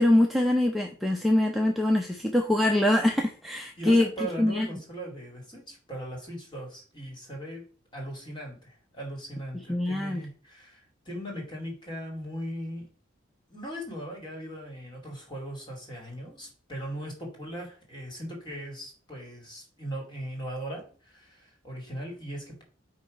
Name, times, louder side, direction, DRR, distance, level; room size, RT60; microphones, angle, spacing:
voice 1, 0.0-4.1 4.4-4.7 9.7-10.2, left 1 dB, ahead, 0.6 m, -23 dB
voice 2, 3.8-12.9 13.5-22.6, equal, 25° left, 2.2 m, -39 dB
8.6 x 2.9 x 5.1 m
head